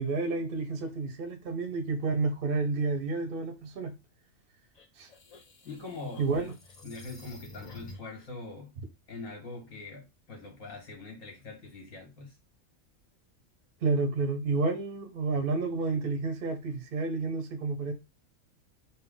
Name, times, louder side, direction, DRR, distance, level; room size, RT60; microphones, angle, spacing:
voice 1, 0.0-3.9 5.0-5.1 6.2-6.5 13.8-17.9, right 3 dB, 50° right, 0.7 m, -30 dB
sound 1, 4.7-8.2, left 2 dB, 55° left, 0.4 m, -50 dB
voice 2, 5.6-6.5 6.8-8.7 9.1-12.3, left 3 dB, 75° left, 2.0 m, -43 dB
4.1 x 2.2 x 3.7 m
omnidirectional pair, 1.4 m